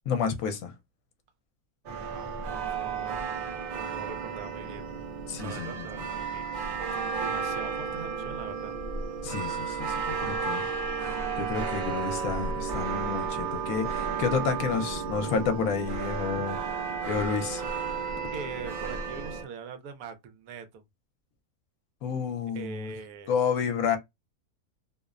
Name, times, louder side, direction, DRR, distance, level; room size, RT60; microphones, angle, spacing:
voice 1, 0.1-0.7 5.3-5.8 9.2-10.6 11.4-17.6 22.0-22.9 23.3-24.0, left 6 dB, 70° left, 1.0 m, -30 dB
sound 1, 1.8-19.4, right 5 dB, 60° right, 0.5 m, -33 dB
voice 2, 2.1-3.3 3.7-4.9 5.3-6.7 7.2-8.8 18.3-20.8 22.5-23.3, right 6 dB, 80° right, 1.1 m, -42 dB
2.8 x 2.0 x 2.3 m
omnidirectional pair, 1.6 m